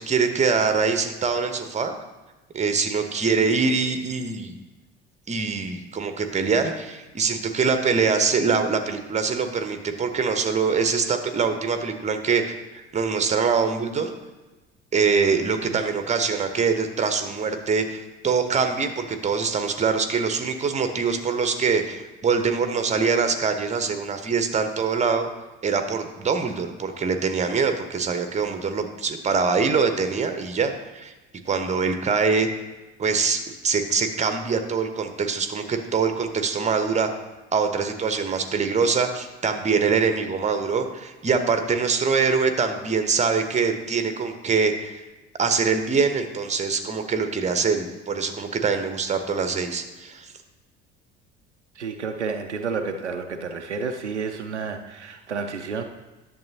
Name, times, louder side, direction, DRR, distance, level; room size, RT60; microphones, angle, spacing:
voice 1, 0.0-1.9 2.5-4.6 5.3-12.6 12.9-14.1 14.9-25.3 25.6-31.1 31.5-32.5 33.0-37.1 37.5-45.0 45.4-50.3, right 5 dB, 20° right, 7 dB, 0.9 m, -24 dB
voice 2, 51.8-55.8, right 5 dB, 90° right, 5 dB, 0.5 m, -30 dB
10.5 x 6.9 x 2.7 m, 1.1 s
figure-of-eight pair, 55°, 34 cm